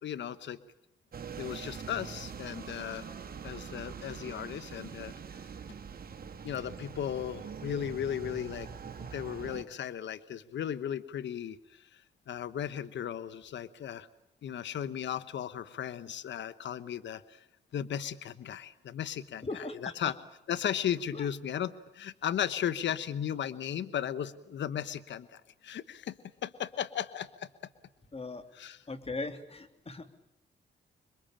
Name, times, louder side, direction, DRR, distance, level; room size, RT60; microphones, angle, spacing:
voice 1, 0.0-0.6 1.4-3.1 3.4-5.1 6.4-8.7 9.0-12.0 12.3-14.1 14.4-17.4 17.7-19.5 19.8-20.1 20.5-27.5 28.5-28.8, left 9 dB, 70° left, 14 dB, 1.1 m, -36 dB
sound 1, 1.1-9.6, right 6 dB, 50° right, 2.2 m, -43 dB
voice 2, 19.4-19.9 21.1-21.3 28.1-28.5 28.9-30.1, left 3 dB, 30° left, 8 dB, 3.0 m, -39 dB
26.5 x 22.0 x 8.9 m, 0.84 s
cardioid pair, 65°, 19 cm